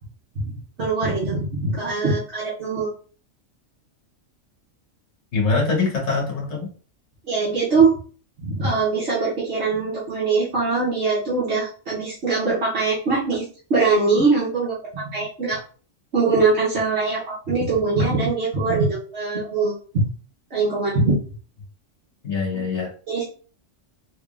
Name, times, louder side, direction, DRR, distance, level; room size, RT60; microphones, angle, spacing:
voice 1, 0.8-2.9 7.3-8.0 8.4-15.6 16.1-19.8 20.5-21.2 23.1-23.2, right 4 dB, 60° right, -7 dB, 1.2 m, -22 dB
voice 2, 5.3-6.7 22.2-22.9, left 4 dB, 65° left, -3 dB, 1.5 m, -23 dB
3.5 x 3.3 x 2.4 m, 0.40 s
omnidirectional pair, 1.3 m